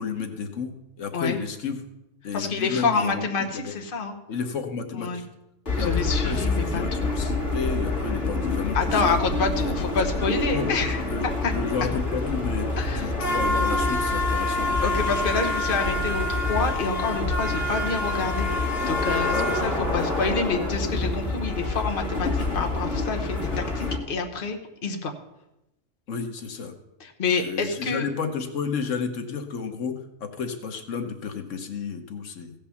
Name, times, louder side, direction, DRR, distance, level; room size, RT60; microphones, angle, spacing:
voice 1, 0.0-1.8 2.2-3.7 4.3-5.3 5.7-5.9 6.2-9.2 9.6-10.0 10.5-10.7 11.1-11.3 11.5-12.7 12.9-14.7 19.3-19.9 26.1-26.7 27.3-32.5, left 6 dB, 90° left, 6 dB, 1.4 m, -31 dB
voice 2, 2.3-4.2 4.9-5.2 5.8-7.1 8.7-11.5 12.8-13.2 14.8-25.1 27.0-28.1, left 4 dB, 50° left, 3 dB, 1.3 m, -28 dB
sound 1, 5.7-24.0, left 2 dB, 70° left, 2.4 m, -26 dB
15.5 x 5.4 x 7.0 m, 0.93 s
omnidirectional pair, 1.2 m